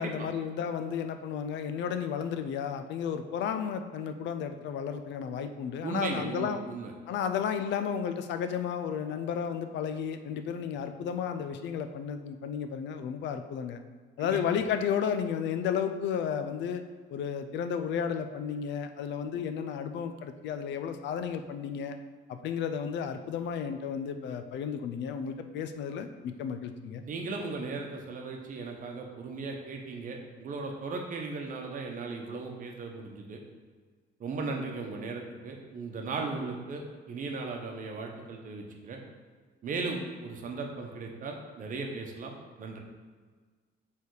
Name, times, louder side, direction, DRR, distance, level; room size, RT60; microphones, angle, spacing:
voice 1, 0.0-6.6 7.1-13.8 14.2-16.8 17.1-22.0 22.3-27.0, left 7 dB, 75° left, 8 dB, 0.5 m, -33 dB
voice 2, 5.8-6.9 14.2-14.4 27.0-33.4 34.2-39.0 39.6-42.8, right 3 dB, 45° right, 2 dB, 0.9 m, -37 dB
6.9 x 3.5 x 4.7 m, 1.5 s
cardioid pair, 155°, 19 cm